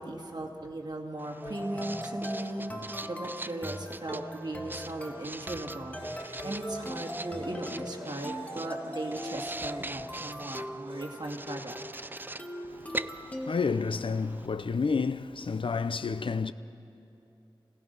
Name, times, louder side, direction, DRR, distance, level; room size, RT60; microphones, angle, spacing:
voice 1, 0.0-11.7, right 1 dB, 50° right, 2.5 m, -38 dB
Writing, 1.2-14.5, right 2 dB, 20° right, 0.4 m, -43 dB
sound 1, 1.4-13.5, equal, 15° left, 1.7 m, -40 dB
sound 2, 5.9-7.6 8.2-10.4 10.9-11.4, right 2 dB, 80° right, 1.8 m, -51 dB
voice 2, 12.7-16.5, left 5 dB, 70° left, 0.6 m, -30 dB
28.0 x 17.5 x 5.5 m
wide cardioid pair, 65°, 9 cm